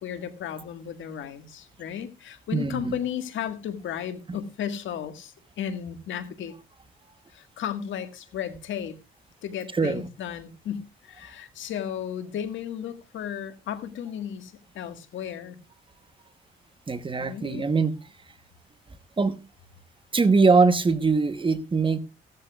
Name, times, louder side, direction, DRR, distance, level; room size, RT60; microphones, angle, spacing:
voice 1, 0.0-6.5 7.3-9.0 9.4-15.6 17.2-17.6, left 9 dB, 75° left, 1.7 m, -34 dB
voice 2, 2.5-3.0 9.8-10.1 16.9-18.0 19.2-19.4 20.1-22.0, right 4 dB, 25° right, 1.1 m, -22 dB
16.5 x 13.0 x 2.4 m
cardioid pair, 90°, 20 cm